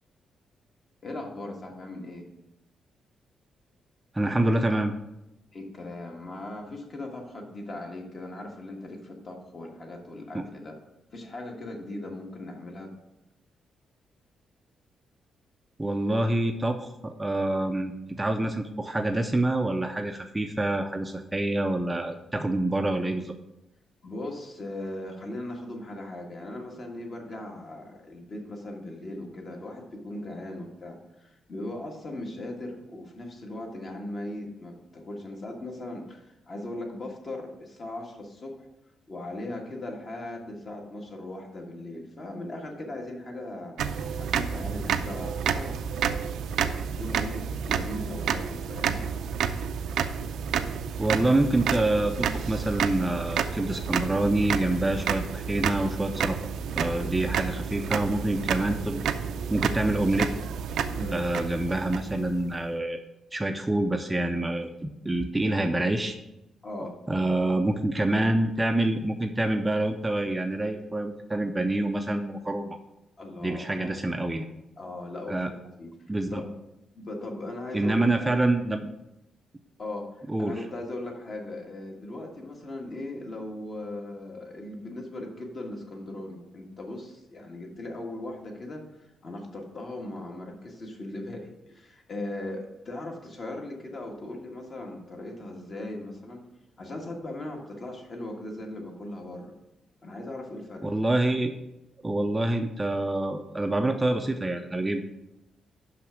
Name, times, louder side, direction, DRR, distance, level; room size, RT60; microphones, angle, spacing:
voice 1, 1.0-2.3 5.5-10.8 11.1-12.9 24.0-38.7 39.1-46.2 46.6-49.1 56.9-57.2 60.9-61.2 66.6-66.9 73.2-73.9 74.8-75.9 76.3-76.5 76.9-78.4 79.8-96.4 96.8-99.5 100.0-100.9, left 1 dB, 40° left, 1 dB, 1.7 m, -38 dB
voice 2, 4.1-4.9 10.3-10.4 15.8-23.3 51.0-56.4 56.7-59.0 59.5-60.3 61.1-63.0 63.3-66.2 67.1-72.8 73.4-74.5 75.3-75.5 76.1-76.4 77.7-78.9 80.3-80.7 100.8-101.5 102.0-105.0, right 1 dB, 10° right, 5 dB, 0.5 m, -26 dB
sound 1, 43.8-62.5, right 7 dB, 85° right, 0.5 m, -30 dB
5.9 x 5.8 x 6.2 m, 0.89 s
cardioid pair, 135°, 0 cm